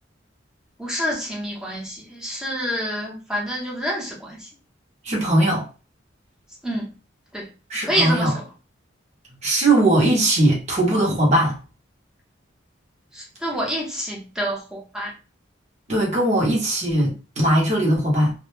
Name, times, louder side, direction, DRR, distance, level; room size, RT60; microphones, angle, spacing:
voice 1, 0.8-4.5 6.6-6.9 7.3-7.5 7.8-8.4 13.1-15.1, equal, 5° right, 0.7 m, -27 dB
voice 2, 5.0-5.6 7.7-8.4 9.4-11.6 15.9-18.3, right 1 dB, 40° right, 0.8 m, -19 dB
2.1 x 2.0 x 3.0 m
head